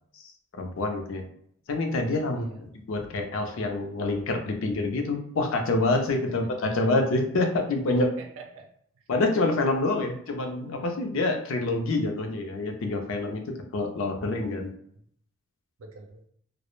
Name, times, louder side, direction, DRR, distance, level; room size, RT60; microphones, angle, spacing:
voice 1, 0.2-1.2 1.7-2.5 2.9-8.1 9.1-14.7, left 2 dB, 65° left, 4 dB, 0.4 m, -27 dB
voice 2, 6.3-6.9 8.2-8.7 9.0-9.1 9.9-10.1 15.8-16.3, right 3 dB, 70° right, 3 dB, 0.5 m, -46 dB
2.3 x 2.0 x 3.0 m, 0.67 s
head